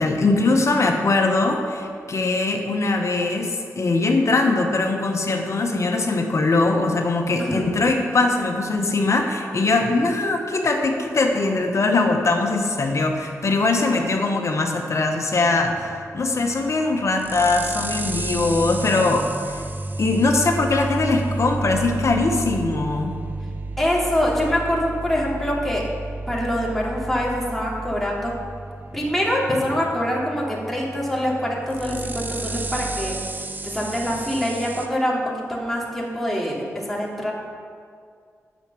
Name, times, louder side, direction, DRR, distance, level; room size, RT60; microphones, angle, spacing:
voice 1, 0.0-19.5 20.0-23.1, left 3 dB, 60° left, 3 dB, 1.2 m, -21 dB
voice 2, 7.4-7.7 23.8-25.8 26.3-28.3 28.9-33.2 33.6-37.3, equal, 5° left, -5 dB, 2.8 m, -24 dB
sound 1, 15.6-34.9, right 2 dB, 35° right, 0.8 m, -32 dB
8.9 x 6.3 x 7.0 m, 2.2 s
cardioid pair, 60°, 6 cm